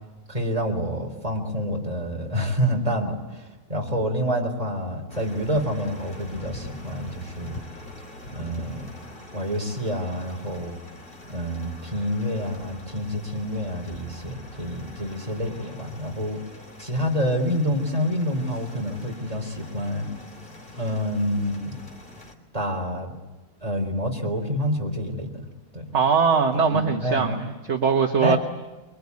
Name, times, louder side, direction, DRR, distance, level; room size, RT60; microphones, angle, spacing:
voice 1, 0.3-3.4 3.7-7.6 8.3-8.9 9.3-10.8 11.3-16.4 16.8-20.1 20.7-21.8 22.5-23.1 23.6-25.4 25.7-25.9 26.7-27.4 28.2-28.4, equal, 25° right, 2 dB, 3.8 m, -27 dB
sound 1, 5.1-22.3, left 1 dB, 40° left, 3.1 m, -43 dB
voice 2, 25.9-28.4, right 6 dB, 55° right, 4 dB, 1.5 m, -21 dB
25.5 x 23.0 x 9.5 m, 1.2 s
omnidirectional pair, 1.4 m